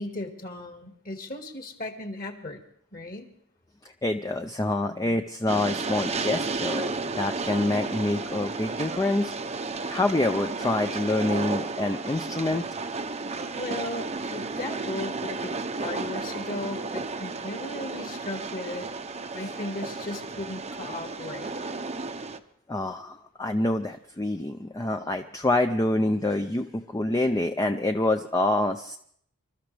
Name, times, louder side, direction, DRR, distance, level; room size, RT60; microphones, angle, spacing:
voice 1, 0.0-2.6 2.9-3.3 13.5-18.9 19.3-21.6, left 2 dB, 40° left, 4 dB, 1.9 m, -36 dB
voice 2, 3.8-6.9 7.2-9.3 9.9-12.6 22.7-29.0, left 2 dB, 15° left, 6 dB, 0.5 m, -26 dB
Train, 5.5-22.4, right 3 dB, 30° right, 0.7 m, -33 dB
27.0 x 13.5 x 3.4 m, 0.64 s
head